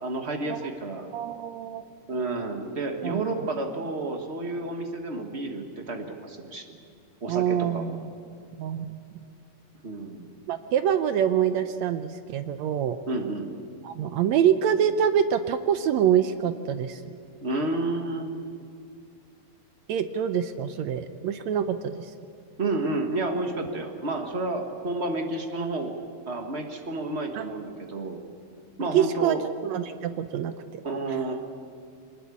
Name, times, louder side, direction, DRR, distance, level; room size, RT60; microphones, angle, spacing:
voice 1, 0.0-1.1 2.1-6.8 7.2-8.0 9.8-10.3 13.1-13.5 17.4-18.3 22.6-26.0 26.3-28.2 28.8-29.4 30.8-31.4, right 2 dB, 50° right, 4 dB, 0.7 m, -30 dB
voice 2, 1.1-1.8 3.0-3.2 7.3-8.1 8.6-9.2 10.5-13.0 13.8-17.2 19.9-22.1 27.4-27.5 28.9-29.4 29.6-30.8, right 9 dB, 75° right, 10 dB, 1.8 m, -25 dB
23.5 x 20.0 x 8.4 m, 2.3 s
omnidirectional pair, 3.7 m